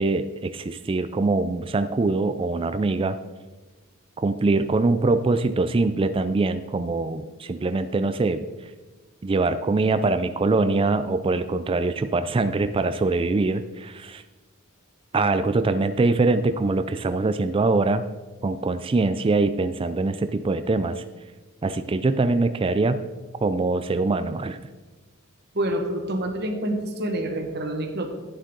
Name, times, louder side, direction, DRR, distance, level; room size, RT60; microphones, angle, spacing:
voice 1, 0.0-3.2 4.2-8.4 9.2-14.2 15.1-18.0 18.4-21.0 21.6-23.0 23.4-24.6, right 3 dB, 25° right, 10 dB, 0.3 m, -23 dB
voice 2, 25.5-28.1, right 1 dB, 50° right, 3 dB, 1.6 m, -27 dB
11.5 x 8.9 x 3.9 m, 1.2 s
head